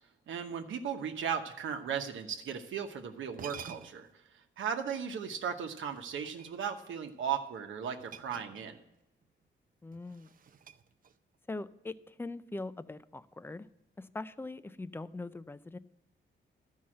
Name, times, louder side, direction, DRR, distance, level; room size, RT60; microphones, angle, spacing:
voice 1, 0.3-4.1 4.6-8.8, right 7 dB, 85° right, 5 dB, 1.0 m, -36 dB
sound 1, 2.9-3.0 3.3-4.2 5.9-6.8 8.0-9.0 9.2-9.4 9.9-11.4, right 7 dB, 45° right, 0.5 m, -50 dB
voice 2, 9.8-10.3 11.5-13.7 14.0-15.8, left 2 dB, 10° left, 15 dB, 0.4 m, -42 dB
12.5 x 5.6 x 7.5 m, 0.88 s
wide cardioid pair, 125°, 20 cm